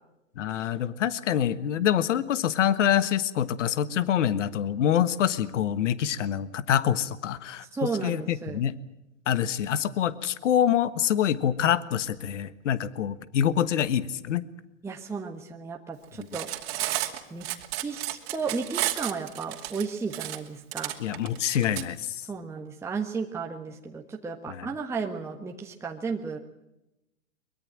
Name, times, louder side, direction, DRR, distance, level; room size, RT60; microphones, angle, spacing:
voice 1, 0.4-7.6 8.0-8.8 9.3-14.4 21.0-22.2 24.5-24.7, left 10 dB, 65° left, 15 dB, 1.5 m, -26 dB
voice 2, 7.7-8.6 14.8-16.5 17.3-17.5 17.8-20.9 22.2-26.4, right 4 dB, 5° right, 1 dB, 1.3 m, -34 dB
Cutlery silverware, 16.2-21.8, right 15 dB, 45° right, 2.7 m, -32 dB
23.0 x 22.0 x 7.5 m, 0.90 s
hypercardioid pair, 125°, 40 cm